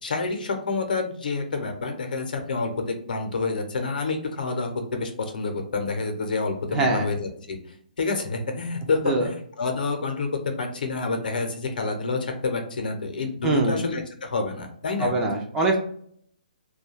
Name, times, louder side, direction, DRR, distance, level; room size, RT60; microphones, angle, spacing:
voice 1, 0.0-7.6 8.0-15.1, left 3 dB, 75° left, 5 dB, 0.7 m, -28 dB
voice 2, 6.7-7.1 9.0-9.3 13.4-13.8 15.0-15.8, right 2 dB, 15° right, 1 dB, 0.3 m, -23 dB
2.3 x 2.2 x 3.1 m, 0.63 s
hypercardioid pair, 160°, 5 cm